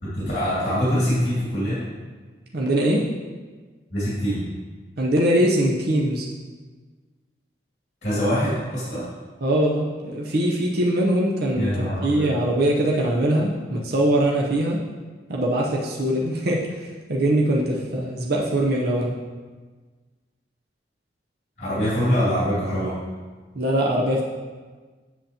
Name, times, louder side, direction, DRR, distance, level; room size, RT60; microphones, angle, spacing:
voice 1, 0.0-1.9 3.9-4.5 8.0-9.1 11.6-12.3 21.6-23.0, equal, 40° left, -10 dB, 2.3 m, -24 dB
voice 2, 2.5-3.1 5.0-6.3 9.4-14.8 15.3-19.2 23.5-24.2, right 1 dB, 60° right, -2 dB, 0.7 m, -22 dB
7.8 x 7.4 x 2.9 m, 1.4 s
head